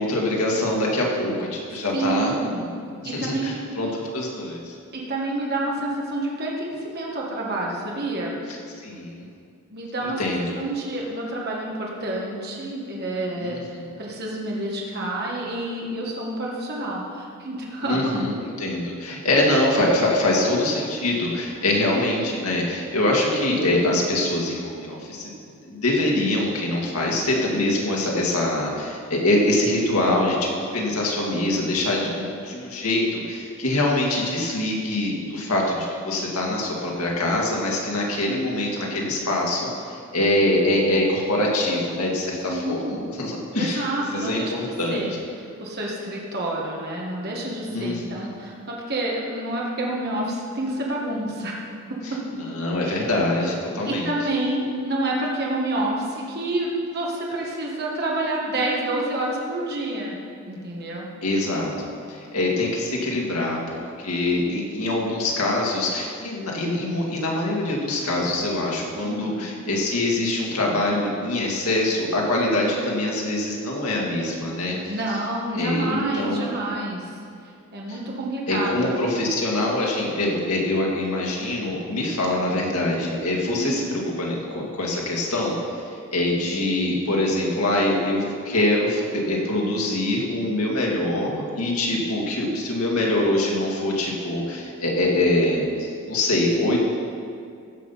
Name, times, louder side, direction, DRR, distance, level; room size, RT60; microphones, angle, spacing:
voice 1, 0.0-2.3 3.0-4.7 8.8-9.3 10.0-10.6 13.4-13.8 17.8-25.3 25.7-45.1 47.7-48.3 52.5-54.1 61.2-74.8 75.5-76.5 77.9-78.0 78.5-85.6 86.1-96.8, left 1 dB, 85° left, -2 dB, 2.1 m, -24 dB
voice 2, 1.9-3.6 4.9-8.4 9.7-18.2 42.5-43.1 43.5-45.1 45.3-51.6 51.9-52.2 52.8-53.1 53.8-60.1 60.5-61.1 69.0-69.4 74.9-77.1 77.7-78.9 83.5-83.7, right 1 dB, 50° right, -3 dB, 1.6 m, -28 dB
15.5 x 5.8 x 5.7 m, 2.3 s
head